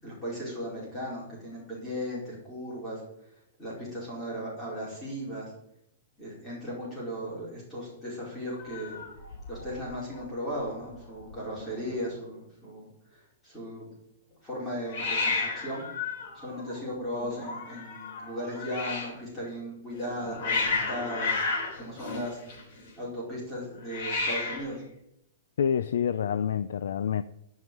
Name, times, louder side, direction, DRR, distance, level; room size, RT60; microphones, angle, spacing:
voice 1, 0.0-3.0 3.6-5.5 6.2-9.0 9.5-13.9 14.4-15.9 16.3-21.4 21.8-22.4 23.0-24.8, equal, 10° left, 4.9 m, -36 dB
Hiss, 8.6-9.9 10.2-10.7 10.9-11.0 11.2-11.9 14.9-19.2 19.9-22.9 23.8-24.8, left 4 dB, 40° left, 3.6 m, -33 dB
voice 2, 25.6-27.2, left 8 dB, 90° left, 0.5 m, -27 dB
14.5 x 5.6 x 9.0 m
supercardioid pair, 180°, 0 cm